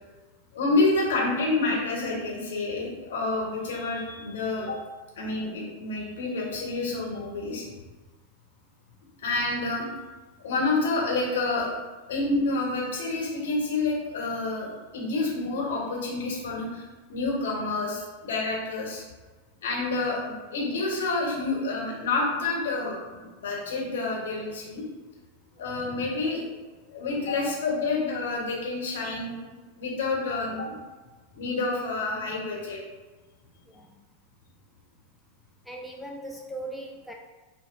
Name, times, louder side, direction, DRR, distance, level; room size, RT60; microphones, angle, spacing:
voice 1, 0.5-4.8 5.2-7.6 9.2-9.9 10.4-11.7 12.1-16.8 17.1-19.0 19.6-24.8 25.6-26.4 26.9-29.3 29.8-30.7 31.3-32.8, left 3 dB, 60° left, -3 dB, 1.1 m, -28 dB
voice 2, 35.7-37.1, right 1 dB, ahead, -1 dB, 0.3 m, -38 dB
6.0 x 2.2 x 2.6 m, 1.3 s
figure-of-eight pair, 90°, 0 cm